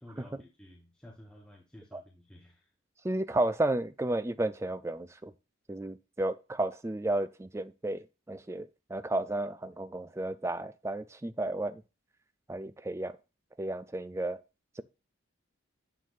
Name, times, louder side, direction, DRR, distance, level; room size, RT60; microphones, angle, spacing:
voice 1, 0.0-2.7, left 1 dB, 5° left, 1.1 m, -53 dB
voice 2, 3.0-5.3 5.7-11.8 12.5-13.1 13.6-14.4 14.8-14.9, right 2 dB, 15° right, 0.3 m, -32 dB
9.1 x 7.5 x 2.4 m
head